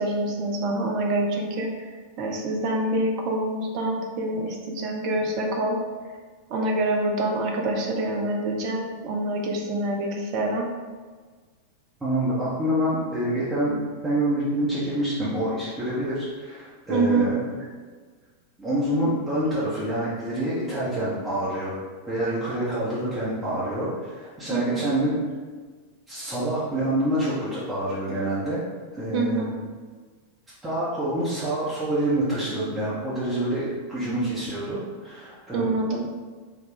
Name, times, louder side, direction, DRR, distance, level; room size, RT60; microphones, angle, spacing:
voice 1, 0.0-1.9 2.2-5.8 6.5-10.7 16.9-17.3 24.5-24.9 29.1-29.5 35.5-36.1, right 2 dB, 40° right, 1 dB, 0.6 m, -26 dB
voice 2, 12.0-13.8 14.0-17.5 18.6-21.8 22.1-25.2 26.1-28.6 28.9-29.6 30.6-35.7, right 1 dB, 15° right, -10 dB, 0.9 m, -27 dB
3.9 x 2.3 x 3.0 m, 1.5 s
figure-of-eight pair, 90°, 0 cm